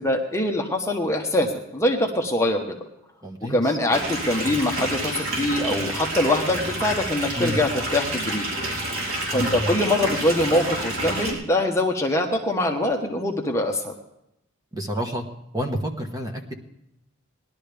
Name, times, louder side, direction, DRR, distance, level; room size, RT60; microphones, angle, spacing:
voice 1, 0.0-2.8 3.4-8.5 9.3-13.9, left 1 dB, 15° left, 2 dB, 1.1 m, -23 dB
voice 2, 3.2-3.8 7.3-7.6 9.3-9.7 14.7-15.2 15.5-16.5, equal, 20° right, 3 dB, 1.2 m, -29 dB
sound 1, 3.9-11.3, right 1 dB, 90° right, 3.9 m, -29 dB
19.5 x 11.5 x 3.4 m, 0.83 s
head